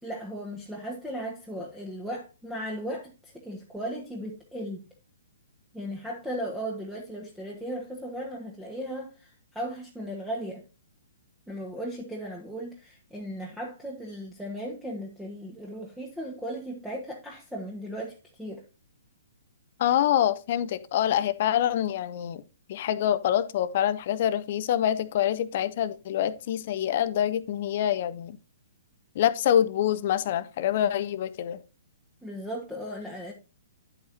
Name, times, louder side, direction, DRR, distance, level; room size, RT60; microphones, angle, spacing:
voice 1, 0.0-4.8 5.7-10.6 11.5-18.6 32.2-33.3, equal, 5° right, 1.3 m, -36 dB
voice 2, 19.8-22.4 22.7-28.4 29.1-31.6, left 10 dB, 45° left, 0.8 m, -26 dB
10.0 x 8.0 x 2.7 m
figure-of-eight pair, 120°, 0 cm